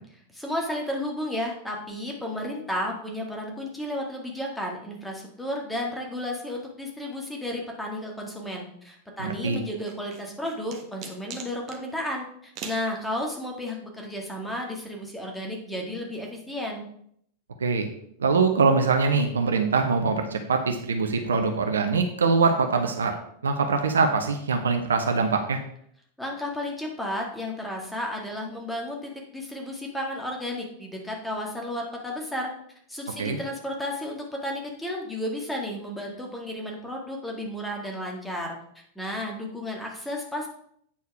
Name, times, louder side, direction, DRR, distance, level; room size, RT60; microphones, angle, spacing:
voice 1, 0.3-16.9 26.2-32.5 32.9-38.6 39.0-40.5, left 1 dB, 5° left, 0 dB, 1.9 m, -33 dB
voice 2, 9.2-9.6 17.6-17.9 18.2-23.1 23.4-25.6 33.2-33.4, right 4 dB, 70° right, 5 dB, 0.9 m, -23 dB
sound 1, 9.9-11.8 12.5-12.9, right 6 dB, 35° right, 1.2 m, -40 dB
8.6 x 4.6 x 4.7 m, 0.68 s
figure-of-eight pair, 90°, 0 cm